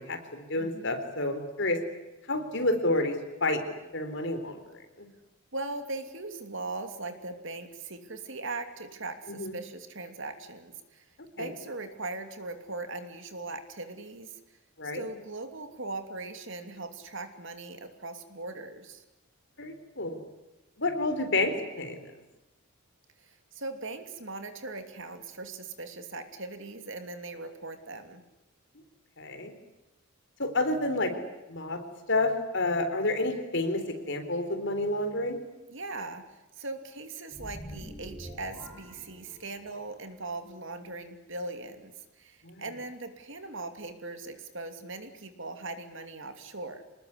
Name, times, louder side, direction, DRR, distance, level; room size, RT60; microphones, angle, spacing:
voice 1, 0.0-1.8 2.3-3.6 3.9-4.6 5.0-5.1 9.4-9.5 11.4-11.5 14.8-15.0 19.6-20.2 20.8-22.0 29.2-29.5 30.4-31.1 31.5-31.8 32.1-35.4 42.4-42.6, left 2 dB, 55° left, 7 dB, 4.0 m, -29 dB
voice 2, 0.6-1.0 5.5-11.1 11.4-14.4 14.9-19.0 23.2-28.2 35.7-46.8, right 2 dB, 55° right, 8 dB, 2.9 m, -40 dB
sound 1, 37.3-39.9, equal, 10° left, 6.7 m, -45 dB
26.5 x 20.5 x 9.8 m, 1.0 s
head